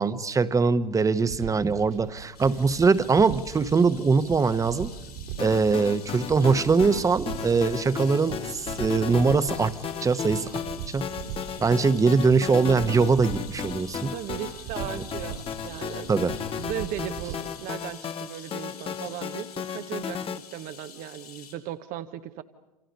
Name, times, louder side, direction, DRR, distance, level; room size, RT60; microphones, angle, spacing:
voice 1, 0.0-4.9 5.4-10.5 10.9-11.1 11.6-14.1 14.9-15.0 16.1-16.3, right 4 dB, 15° right, 13 dB, 1.1 m, -22 dB
sound 1, 1.2-17.3, right 9 dB, 65° right, 2.9 m, -40 dB
sound 2, 2.3-21.5, left 7 dB, 85° left, 5.4 m, -48 dB
sound 3, 5.4-20.4, left 7 dB, 30° left, 1.1 m, -35 dB
voice 2, 14.1-16.1 16.6-22.4, right 12 dB, 45° right, 9 dB, 1.0 m, -37 dB
28.5 x 27.5 x 5.5 m, 1.0 s
hypercardioid pair, 85°, 19 cm